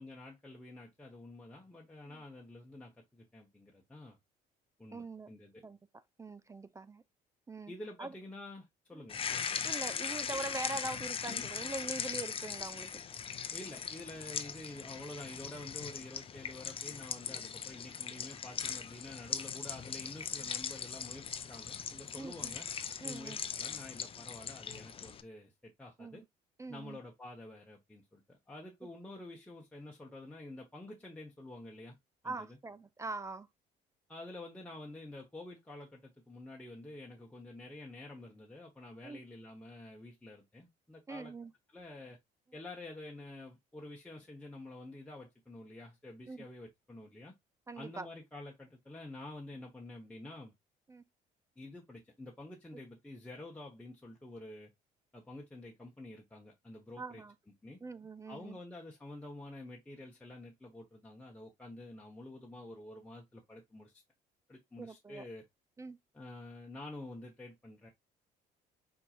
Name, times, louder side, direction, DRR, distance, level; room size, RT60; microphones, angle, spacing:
voice 1, 0.0-4.2 4.8-5.6 7.7-9.2 13.5-22.7 23.0-26.2 26.7-32.0 32.2-32.6 34.1-41.3 41.7-42.2 42.5-47.3 47.8-50.5 51.6-54.7 55.1-57.2 57.6-57.8 58.3-64.0 64.5-65.4 66.1-67.9, left 2 dB, 10° left, 1.2 m, -49 dB
voice 2, 4.9-5.3 5.6-5.8 6.2-7.0 7.5-7.7 8.0-8.1 8.9-9.1 9.6-12.9 22.2-22.5 23.0-23.4 26.0-26.2 26.6-27.0 32.2-33.5 39.0-39.2 41.1-41.5 46.3-46.4 47.7-48.1 50.9-51.0 57.0-57.3 57.8-58.6 64.8-65.2 65.8-66.0, right 3 dB, 20° right, 0.4 m, -42 dB
sound 1, 9.1-25.2, left 7 dB, 35° left, 0.6 m, -40 dB
4.6 x 4.5 x 2.4 m
cardioid pair, 110°, 17 cm